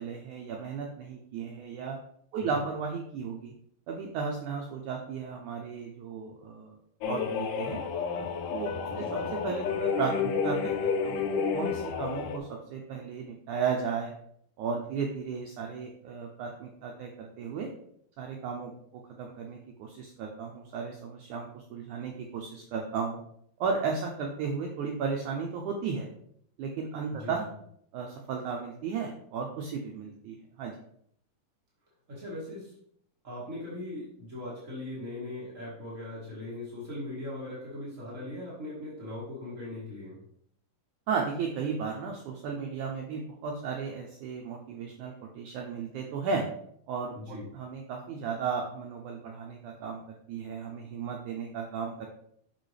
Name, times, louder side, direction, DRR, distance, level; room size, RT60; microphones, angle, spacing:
voice 1, 0.0-2.0 2.3-3.5 3.9-6.8 7.1-7.8 8.5-8.9 9.3-11.2 11.5-14.1 14.6-17.7 18.2-23.2 23.6-26.1 26.6-27.5 27.9-30.7 41.1-46.4 46.9-50.0 50.3-52.1, right 5 dB, 75° right, 1 dB, 1.9 m, -34 dB
sound 1, 7.0-12.4, left 6 dB, 75° left, 2.1 m, -30 dB
voice 2, 8.9-9.3 27.1-27.3 32.1-32.7 33.2-40.2 47.1-47.5, left 1 dB, 40° right, -7 dB, 1.2 m, -39 dB
6.4 x 6.2 x 3.2 m, 0.69 s
omnidirectional pair, 4.1 m